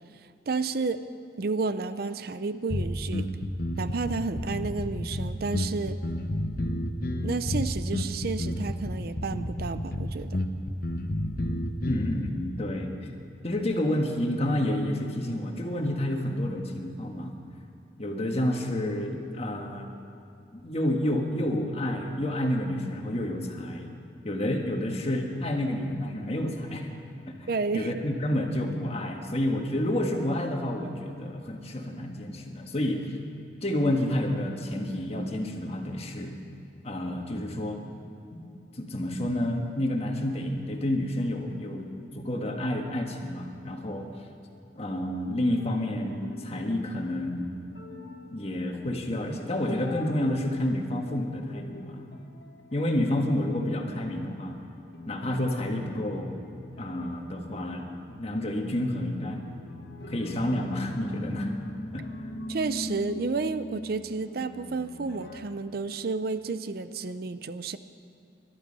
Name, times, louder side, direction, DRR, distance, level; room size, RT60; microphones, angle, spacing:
voice 1, 0.5-1.0 1.4-3.3 3.8-6.0 7.2-10.4 27.5-27.9 62.5-67.8, right 4 dB, 55° right, 12 dB, 0.5 m, -31 dB
sound 1, 2.7-12.3, left 1 dB, 55° left, 1.0 m, -31 dB
voice 2, 11.9-13.1 13.4-17.3 18.0-19.9 20.5-23.9 24.2-26.9 27.7-33.1 33.6-36.3 36.8-37.8 38.3-38.4 38.7-41.9 42.1-44.1 44.7-47.5 48.3-52.1 52.7-54.6 55.1-56.3 56.8-59.4 60.1-61.5 61.9-62.0, left 1 dB, 35° left, 2 dB, 1.6 m, -29 dB
sound 2, 45.6-49.0 49.2-54.2 54.5-54.6 54.9-65.5, left 1 dB, 75° left, 1.5 m, -42 dB
21.0 x 12.0 x 5.4 m, 2.7 s
head